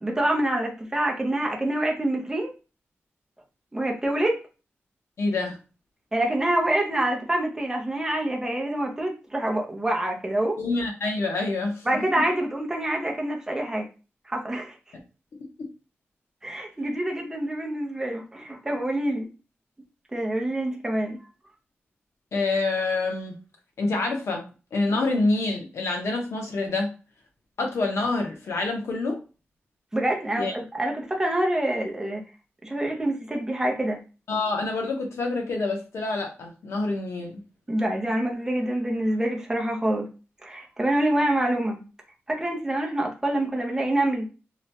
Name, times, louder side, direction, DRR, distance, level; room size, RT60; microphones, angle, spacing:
voice 1, 0.0-2.5 3.7-4.4 6.1-10.6 11.9-13.9 14.3-14.7 16.4-19.3 20.1-21.2 29.9-32.2 32.6-34.0 37.7-40.1 40.4-41.8 42.3-44.3, right 1 dB, 10° right, 0.6 m, -26 dB
voice 2, 5.2-5.6 10.6-12.0 15.6-15.7 22.3-23.3 23.8-24.4 24.7-26.9 27.6-29.2 30.4-30.5 34.3-37.4, left 3 dB, 85° left, 0.8 m, -27 dB
2.9 x 2.2 x 2.8 m
wide cardioid pair, 180°, 5 cm